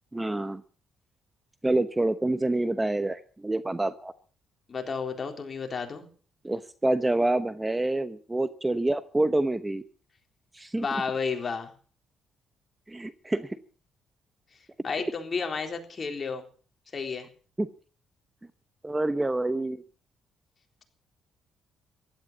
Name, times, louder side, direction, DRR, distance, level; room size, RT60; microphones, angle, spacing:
voice 1, 0.1-0.6 1.6-4.1 6.4-9.8 10.5-10.9 12.9-13.6 15.0-15.1 17.6-17.7 18.8-19.8, right 2 dB, 15° right, 13 dB, 0.9 m, -27 dB
voice 2, 4.7-6.1 10.8-11.7 14.8-16.4 16.9-17.3, left 5 dB, 40° left, 4 dB, 3.8 m, -32 dB
15.5 x 12.5 x 7.3 m, 0.42 s
cardioid pair, 90°, 0 cm